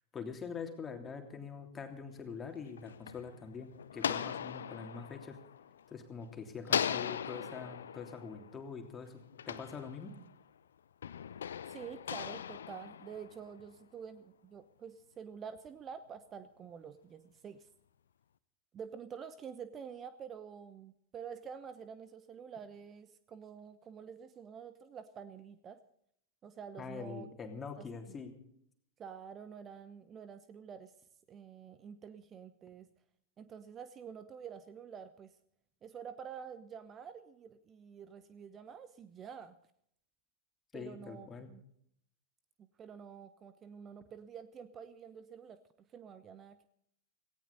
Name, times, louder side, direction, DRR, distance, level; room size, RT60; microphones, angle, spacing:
voice 1, 0.1-5.4 5.9-10.1 26.8-28.3 40.7-41.5, left 5 dB, 20° left, 5 dB, 3.1 m, -44 dB
sound 1, 2.5-6.2 6.6-10.4 11.0-13.7, left 8 dB, 65° left, 0.7 m, -39 dB
voice 2, 11.7-17.7 18.7-25.8 26.4-27.3 27.8-27.9 29.0-30.9 31.3-32.9 33.4-35.4 35.8-39.6 40.7-41.6 42.6-45.6 45.9-46.6, right 7 dB, 25° right, 13 dB, 1.0 m, -48 dB
18.0 x 17.5 x 4.1 m, 0.69 s
figure-of-eight pair, 90°, 0 cm